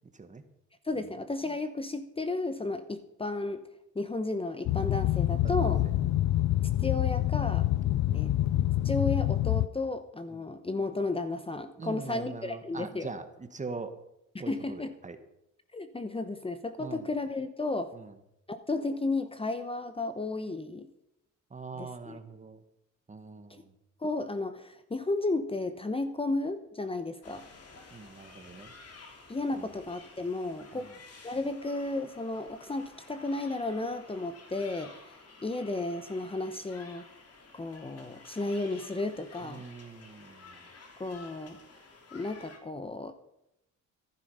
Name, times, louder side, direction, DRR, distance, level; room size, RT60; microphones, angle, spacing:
voice 1, 0.8-3.6 3.9-5.8 6.8-7.7 8.1-8.3 8.8-13.1 14.3-14.9 15.7-17.9 18.5-20.9 21.8-22.2 23.5-23.6 24.0-27.5 29.3-30.9 31.2-37.1 37.5-39.6 41.0-41.6 42.1-43.1, left 2 dB, 20° left, 10 dB, 0.9 m, -33 dB
Boat Water vehicle, 4.6-9.7, left 14 dB, 70° left, 0.5 m, -26 dB
voice 2, 11.8-14.0 14.4-15.2 16.8-17.0 17.9-18.1 21.5-22.6 23.1-23.7 27.9-28.7 29.5-29.7 30.7-30.9 39.4-40.6, right 4 dB, 25° right, 9 dB, 1.5 m, -42 dB
sound 1, 27.2-42.6, left 3 dB, 55° left, 2.9 m, -52 dB
14.0 x 11.5 x 5.6 m, 0.83 s
cardioid pair, 90°, 30 cm